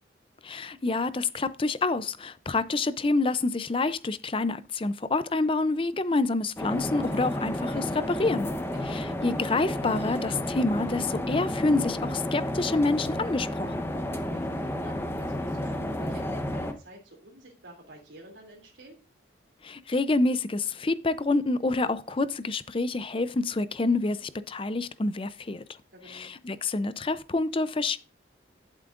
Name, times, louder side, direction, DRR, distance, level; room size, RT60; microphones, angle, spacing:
voice 1, 0.4-8.5 8.9-13.8 19.6-25.6 26.1-28.0, left 3 dB, 30° left, 0.5 m, -27 dB
sound 1, 6.6-16.7, left 1 dB, 15° left, 0.9 m, -31 dB
voice 2, 8.5-8.9 14.2-19.0 25.9-26.3, right 1 dB, 85° right, 2.7 m, -50 dB
11.5 x 8.2 x 2.5 m
head